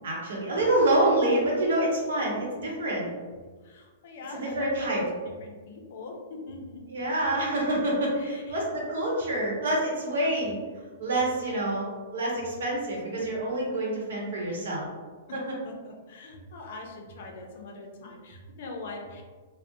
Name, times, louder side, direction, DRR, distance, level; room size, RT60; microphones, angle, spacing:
voice 1, 0.0-3.1 4.3-5.0 6.9-11.9 12.1-14.9, right 1 dB, 75° right, -3 dB, 0.8 m, -27 dB
voice 2, 3.6-7.0 8.1-8.6 8.9-9.1 15.3-19.2, left 2 dB, 55° left, 2 dB, 0.4 m, -42 dB
2.5 x 2.0 x 2.6 m, 1.4 s
hypercardioid pair, 165°, 0 cm